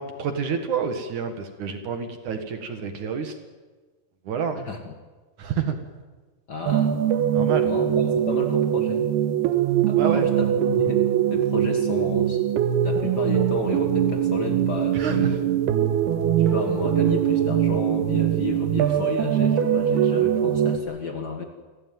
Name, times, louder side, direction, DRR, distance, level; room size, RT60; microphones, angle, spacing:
voice 1, 0.0-3.4 4.2-4.7 5.4-5.8 7.3-7.7 10.0-10.3 14.9-15.3, right 6 dB, 60° right, 7 dB, 2.6 m, -28 dB
voice 2, 6.5-6.9 7.7-9.0 9.9-11.0 11.3-12.4 12.8-15.4 16.4-21.4, left 4 dB, 70° left, 4 dB, 0.9 m, -32 dB
sound 1, 6.7-20.8, right 10 dB, 75° right, 3.0 m, -22 dB
28.0 x 15.5 x 9.2 m, 1.3 s
omnidirectional pair, 4.7 m